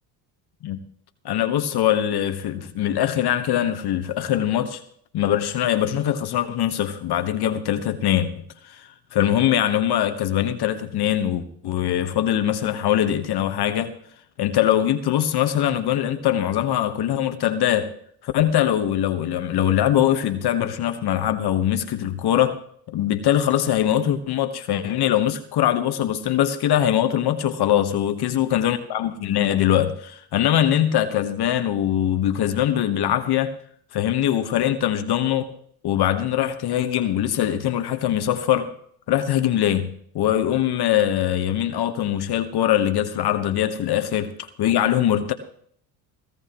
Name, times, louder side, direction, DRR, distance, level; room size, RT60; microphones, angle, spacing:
voice 1, 1.2-4.8 5.1-8.3 8.6-13.9 14.4-17.9 18.2-22.6 22.9-33.5 33.9-35.5 35.8-38.7 39.1-39.9 40.1-45.3, left 11 dB, 55° left, 1.3 m, -22 dB
18.0 x 16.5 x 3.1 m
supercardioid pair, 85°, 47 cm